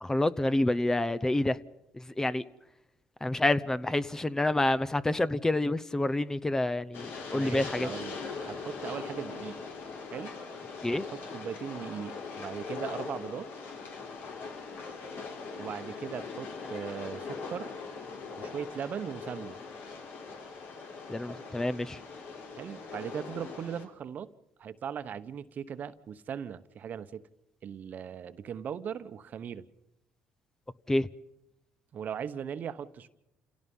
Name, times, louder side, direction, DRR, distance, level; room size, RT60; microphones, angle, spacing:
voice 1, 0.0-1.6 2.2-2.4 3.2-7.9 10.8-11.1 21.1-22.0 30.9-31.1, left 1 dB, 15° left, 0.8 m, -28 dB
Train, 6.9-23.9, left 4 dB, 70° left, 4.5 m, -41 dB
voice 2, 7.3-9.6 10.1-10.3 10.9-13.5 15.5-17.7 18.4-19.6 22.5-24.3 24.6-27.2 27.6-29.6 31.9-33.1, right 8 dB, 55° right, 1.1 m, -39 dB
28.5 x 17.0 x 5.6 m
supercardioid pair, 80°, 4 cm